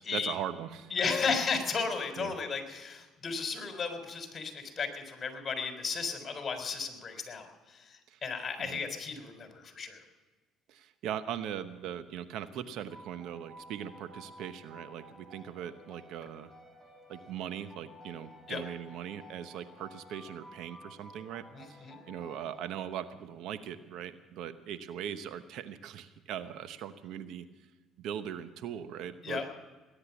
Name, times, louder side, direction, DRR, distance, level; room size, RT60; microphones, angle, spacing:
voice 1, 0.0-0.9 2.2-2.3 8.1-8.2 8.6-8.8 10.7-16.5 17.1-27.5 28.0-29.4, right 9 dB, 70° right, 11 dB, 0.9 m, -40 dB
voice 2, 0.9-10.0 18.5-18.6 21.5-22.0 29.2-29.4, left 5 dB, 35° left, 5 dB, 3.8 m, -34 dB
sound 1, 12.9-23.3, equal, 15° right, 7.0 m, -53 dB
19.5 x 10.5 x 7.1 m, 1.3 s
supercardioid pair, 85°, 0 cm